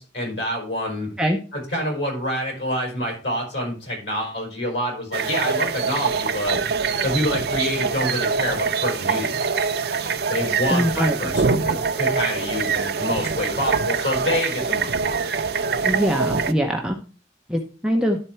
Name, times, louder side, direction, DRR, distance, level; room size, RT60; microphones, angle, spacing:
voice 1, 0.0-1.1 1.5-6.6 7.0-9.4 10.3-14.9, left 1 dB, 85° left, 0 dB, 4.9 m, -27 dB
sound 1, 5.1-16.5, right 5 dB, 60° right, 0.6 m, -24 dB
voice 2, 10.7-11.3 15.9-17.0 17.5-18.2, equal, 5° right, 1 dB, 0.8 m, -22 dB
11.5 x 4.4 x 4.4 m, 0.35 s
head